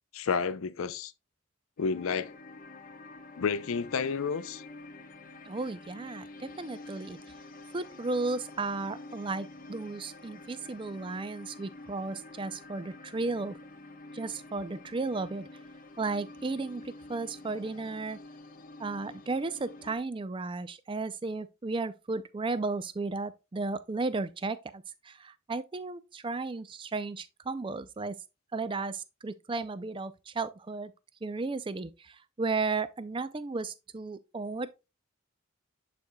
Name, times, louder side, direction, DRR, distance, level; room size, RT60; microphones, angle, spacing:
voice 1, 0.1-1.1 1.8-2.3 3.4-4.6, left 5 dB, 80° left, 0.5 m, -30 dB
sound 1, 1.8-20.0, left 2 dB, 40° left, 0.8 m, -48 dB
voice 2, 5.5-7.2 7.7-13.6 14.1-15.5 16.0-18.2 18.8-28.2 28.5-30.9 31.2-34.7, right 3 dB, 25° right, 0.4 m, -34 dB
11.5 x 4.2 x 2.2 m
head